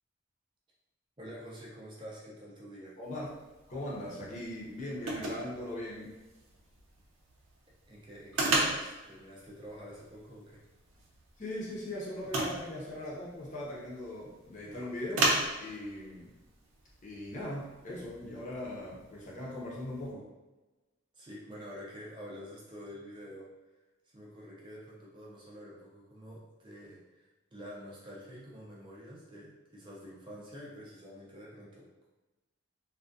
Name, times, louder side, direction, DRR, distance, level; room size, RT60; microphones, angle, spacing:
voice 1, 1.2-3.0 7.9-10.6 21.1-23.5 24.1-32.1, equal, 25° right, -5 dB, 0.4 m, -48 dB
voice 2, 3.0-3.3 3.7-6.2 11.4-15.3 15.6-16.3 17.0-20.3, left 1 dB, 40° left, -5 dB, 0.7 m, -40 dB
sound 1, 3.0-20.1, right 2 dB, 85° right, 0.6 m, -38 dB
2.3 x 2.2 x 2.5 m, 1.1 s
head